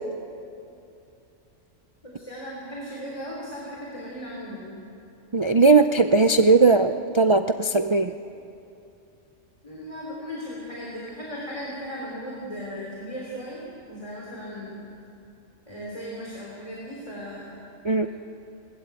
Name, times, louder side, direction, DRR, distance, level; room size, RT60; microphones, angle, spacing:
voice 1, 2.0-4.8 9.6-13.6 13.9-14.8 15.7-17.6 18.0-18.1, equal, 25° left, -4 dB, 3.6 m, -37 dB
voice 2, 5.3-8.1 17.8-18.1, right 3 dB, 45° right, 7 dB, 0.4 m, -18 dB
21.0 x 19.5 x 8.2 m, 2.7 s
omnidirectional pair, 1.3 m